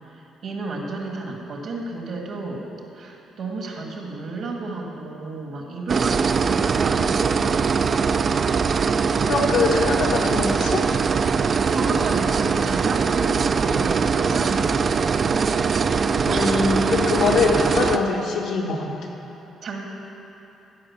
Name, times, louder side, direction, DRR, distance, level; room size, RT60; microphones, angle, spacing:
voice 1, 0.0-2.6 2.9-7.8 11.7-15.4 16.3-16.6 19.6-19.8, right 3 dB, 65° right, 1 dB, 1.9 m, -32 dB
sound 1, 5.9-18.0, right 5 dB, 45° right, 0.4 m, -21 dB
voice 2, 9.3-10.9 16.2-18.9, left 4 dB, 85° left, -1 dB, 1.6 m, -23 dB
14.0 x 5.3 x 7.3 m, 3.0 s
cardioid pair, 90°, 0 cm